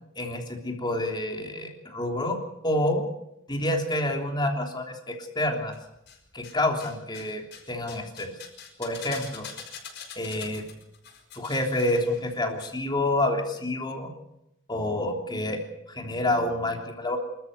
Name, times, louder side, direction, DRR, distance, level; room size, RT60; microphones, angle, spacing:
voice 1, 0.2-2.4 2.6-3.0 3.5-5.7 6.3-7.4 7.7-8.3 8.8-9.5 10.1-10.6 11.3-14.1 14.7-15.6 15.9-17.2, left 1 dB, 20° left, 2 dB, 3.3 m, -28 dB
sound 1, 5.7-6.5 6.8-12.7 12.9-13.0, left 7 dB, 55° left, 6.1 m, -44 dB
26.5 x 13.5 x 8.2 m, 0.82 s
head